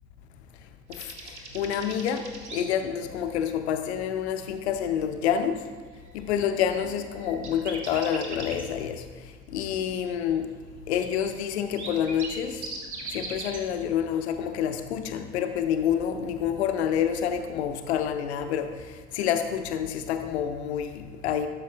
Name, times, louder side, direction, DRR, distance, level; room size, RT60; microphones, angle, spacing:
voice 1, 0.9-5.7 6.1-10.5 10.9-12.7 13.1-21.5, left 8 dB, 70° left, 0.6 m, -28 dB
sound 1, 0.9-2.6 6.0-6.1 6.4-8.6 11.3-11.4 11.6-13.6, right 3 dB, 85° right, 0.9 m, -39 dB
12.5 x 6.5 x 2.4 m
figure-of-eight pair, 50°, 33 cm